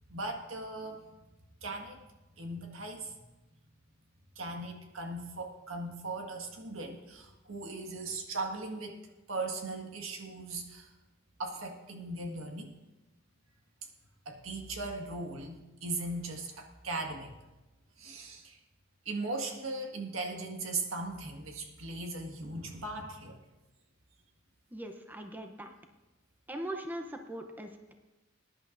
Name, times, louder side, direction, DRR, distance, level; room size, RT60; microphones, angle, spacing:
voice 1, 0.1-1.0 1.6-2.0 2.4-3.2 4.4-9.0 9.3-10.9 11.4-12.8 14.3-17.3 18.0-18.6 19.1-23.4, right 2 dB, 85° right, 3 dB, 1.7 m, -38 dB
voice 2, 24.7-25.7 26.5-27.9, right 1 dB, 10° right, 5 dB, 0.7 m, -40 dB
20.5 x 10.5 x 2.6 m, 1.1 s
head